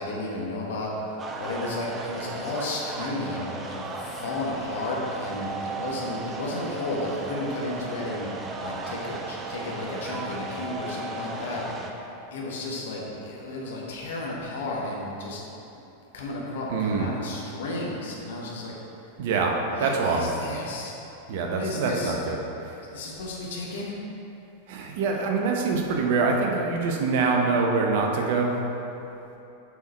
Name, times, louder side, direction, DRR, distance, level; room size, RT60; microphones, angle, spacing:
voice 1, 0.0-8.3 8.6-15.4 16.1-18.7 19.7-21.0 21.5-22.1 22.9-23.9, left 2 dB, 60° left, -3 dB, 1.2 m, -33 dB
sound 1, 1.2-11.9, right 3 dB, 20° right, 0.6 m, -35 dB
voice 2, 16.7-17.1 19.2-20.3 21.3-22.4 24.7-28.5, right 4 dB, 50° right, 1 dB, 0.8 m, -25 dB
6.9 x 4.5 x 4.4 m, 3.0 s
figure-of-eight pair, 90°, 0 cm